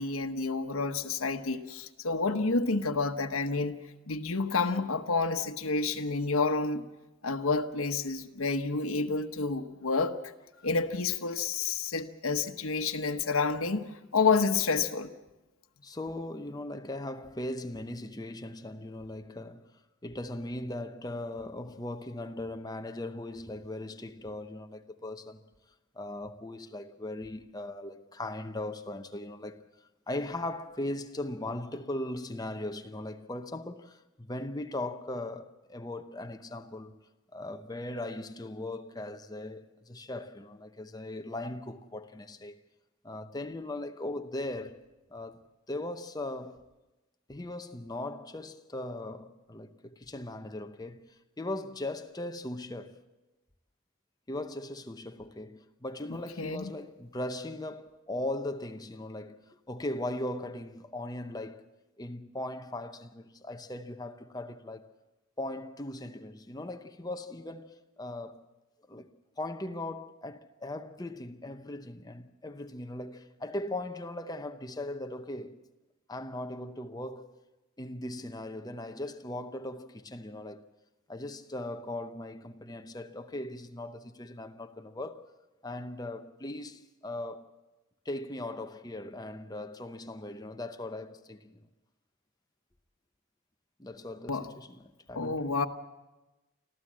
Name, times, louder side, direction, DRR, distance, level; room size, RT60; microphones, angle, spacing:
voice 1, 0.0-3.8 4.1-6.8 7.2-10.1 10.6-15.1 56.4-56.6 94.3-94.5 95.1-95.7, left 4 dB, 75° left, 1.1 m, -29 dB
voice 2, 15.8-25.5 25.9-37.0 37.3-42.6 43.0-44.8 45.1-45.4 45.7-46.6 47.3-53.0 54.3-61.7 62.0-64.9 65.4-68.5 68.9-69.1 69.4-75.6 76.1-77.3 77.8-80.6 81.1-85.3 85.6-87.5 88.0-91.7 93.8-95.6, left 1 dB, 20° left, 0.8 m, -39 dB
25.5 x 14.5 x 7.5 m
head